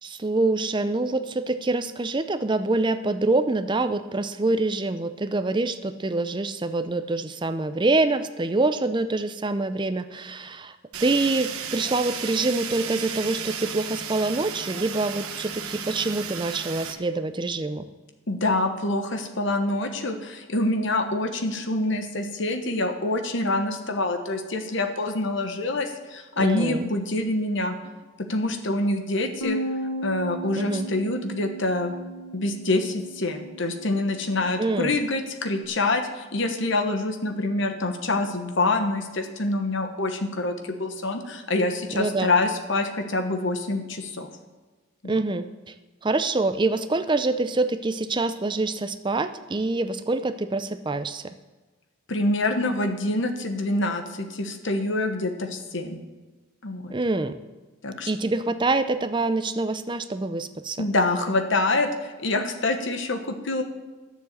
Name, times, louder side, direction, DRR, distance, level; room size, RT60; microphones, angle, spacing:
voice 1, 0.0-17.8 26.4-26.9 30.6-30.9 34.6-34.9 41.9-42.3 45.1-45.7 46.0-51.3 56.9-57.4 58.1-60.9, right 2 dB, 20° right, 11 dB, 0.5 m, -25 dB
Fire, 10.9-16.9, right 7 dB, 90° right, 1.0 m, -34 dB
voice 2, 18.3-27.8 28.3-29.6 30.0-31.9 32.3-44.3 45.0-45.2 52.1-56.0 56.6-56.9 57.8-58.1 60.8-63.6, left 2 dB, 55° left, 5 dB, 1.2 m, -26 dB
Bass guitar, 29.4-35.7, right 2 dB, 80° left, 1.1 m, -36 dB
10.5 x 7.1 x 8.0 m, 1.3 s
head